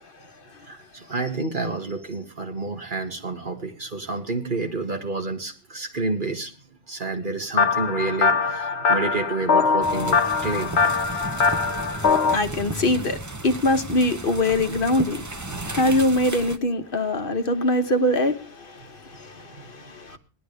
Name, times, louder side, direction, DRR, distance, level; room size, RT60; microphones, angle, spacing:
voice 1, 0.0-0.7 12.3-15.3 15.6-20.2, left 1 dB, 60° left, 1.3 m, -23 dB
voice 2, 0.7-6.5 6.9-11.0 15.5-16.0 19.5-19.7 20.1-20.2, right 3 dB, 50° right, 2.1 m, -29 dB
sound 1, 7.6-12.4, left 5 dB, 85° left, 1.1 m, -22 dB
sound 2, 9.8-16.6, right 2 dB, 20° right, 0.8 m, -34 dB
19.0 x 11.5 x 3.4 m
omnidirectional pair, 1.1 m